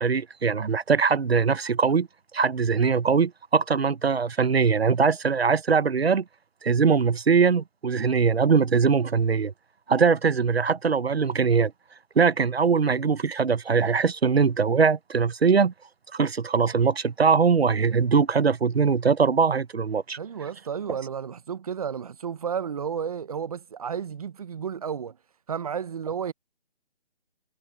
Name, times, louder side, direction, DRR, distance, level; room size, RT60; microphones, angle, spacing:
voice 1, 0.0-2.1 2.3-6.2 6.6-9.5 9.9-11.7 12.2-15.7 16.1-20.2, right 5 dB, 90° right, 1.1 m, -22 dB
voice 2, 20.2-25.2 25.5-26.3, right 7 dB, 35° right, 0.7 m, -32 dB
hypercardioid pair, 160°, 30 cm